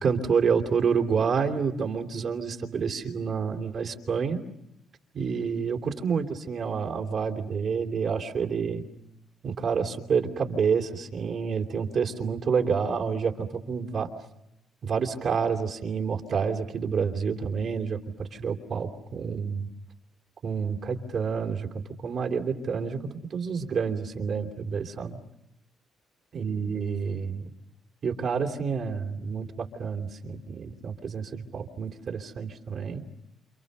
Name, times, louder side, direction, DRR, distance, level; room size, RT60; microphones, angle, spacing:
voice 1, 0.0-4.4 5.1-8.8 9.4-14.1 14.8-19.7 20.4-23.0 23.3-25.2 26.3-27.5 28.0-33.0, right 6 dB, 55° right, 2 dB, 3.1 m, -28 dB
28.5 x 28.5 x 6.8 m, 0.82 s
cardioid pair, 90°, 0 cm